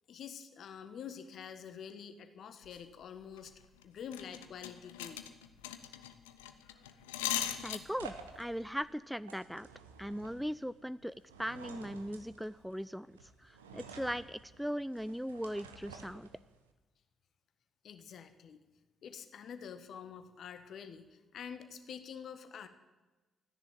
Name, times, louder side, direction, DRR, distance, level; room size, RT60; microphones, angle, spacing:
voice 1, 0.1-5.2 17.8-18.6 19.0-22.7, left 7 dB, 60° left, 10 dB, 1.4 m, -47 dB
sound 1, 2.6-2.8 3.2-3.5 3.8-3.9 4.1-8.2 8.5-8.8, left 11 dB, 80° left, 0.7 m, -39 dB
sound 2, 6.8-16.7, right 5 dB, 85° right, 1.0 m, -53 dB
voice 2, 7.6-9.7 10.0-16.3, equal, ahead, 17 dB, 0.5 m, -39 dB
14.0 x 10.5 x 9.1 m, 1.2 s
figure-of-eight pair, 40°, 0 cm